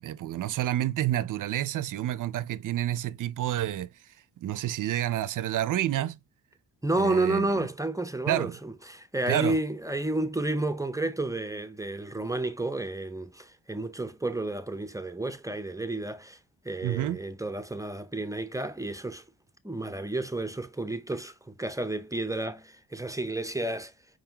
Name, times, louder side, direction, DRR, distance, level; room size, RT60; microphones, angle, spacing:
voice 1, 0.0-3.9 4.4-6.2 7.0-7.5 8.3-8.6 9.3-9.5 16.8-17.2, right 12 dB, 55° right, 0.5 m, -29 dB
voice 2, 6.8-16.4 16.6-19.2 19.6-23.9, right 2 dB, 10° right, 0.6 m, -31 dB
5.1 x 3.7 x 2.8 m
cardioid pair, 70°, 38 cm